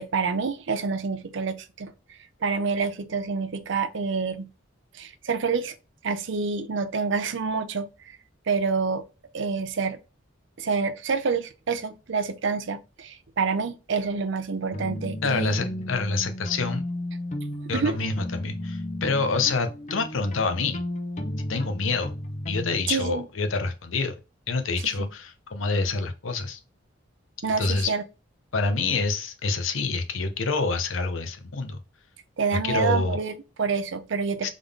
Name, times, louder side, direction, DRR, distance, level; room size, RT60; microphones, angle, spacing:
voice 1, 0.0-4.5 4.9-5.7 6.0-8.2 8.5-9.0 9.3-10.0 10.6-15.6 17.7-18.0 22.9-23.3 24.8-24.9 27.4-28.0 32.4-34.5, right 5 dB, 65° right, 0.5 m, -27 dB
sound 1, 14.7-22.8, left 1 dB, 35° left, 0.8 m, -34 dB
voice 2, 15.2-16.9 17.7-20.8 21.5-22.1 22.5-24.1 24.5-26.6 27.6-27.9 28.5-31.8 32.6-33.2 34.4-34.5, left 4 dB, 70° left, 0.7 m, -27 dB
3.7 x 3.7 x 3.5 m
head